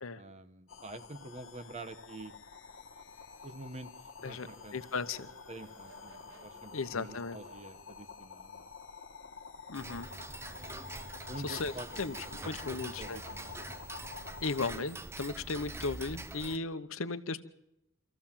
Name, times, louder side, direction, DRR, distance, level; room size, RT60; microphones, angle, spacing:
voice 1, 0.1-2.3 3.4-5.1 5.5-8.7 9.9-10.0 11.3-12.0 12.4-13.5, right 2 dB, 35° right, 10 dB, 1.0 m, -47 dB
sound 1, 0.7-14.6, left 5 dB, 70° left, 1.2 m, -49 dB
Race car auto racing / Accelerating revving vroom, 3.0-8.6, right 3 dB, 70° right, 2.2 m, -60 dB
voice 2, 4.2-5.3 6.7-7.4 9.7-10.1 11.4-11.7 12.0-12.1 12.4-13.2 14.4-17.4, left 4 dB, 85° left, 12 dB, 0.9 m, -36 dB
Tick-tock, 9.7-16.6, right 2 dB, 15° right, 0.7 m, -44 dB
26.0 x 14.5 x 7.4 m, 0.83 s
head